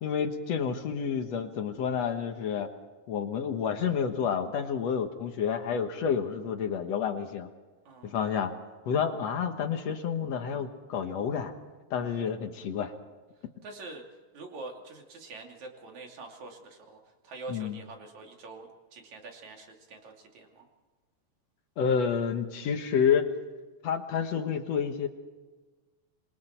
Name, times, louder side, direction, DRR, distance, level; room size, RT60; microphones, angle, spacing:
voice 1, 0.0-2.7 3.1-7.5 8.0-8.5 8.9-11.5 11.9-12.9 17.5-17.8 21.8-23.3 23.8-25.1, left 7 dB, 60° left, 6 dB, 1.8 m, -29 dB
voice 2, 7.9-8.2 13.6-14.0 14.3-17.0 17.2-20.6, right 3 dB, 50° right, 2 dB, 3.9 m, -45 dB
27.5 x 23.0 x 4.5 m, 1.3 s
omnidirectional pair, 4.5 m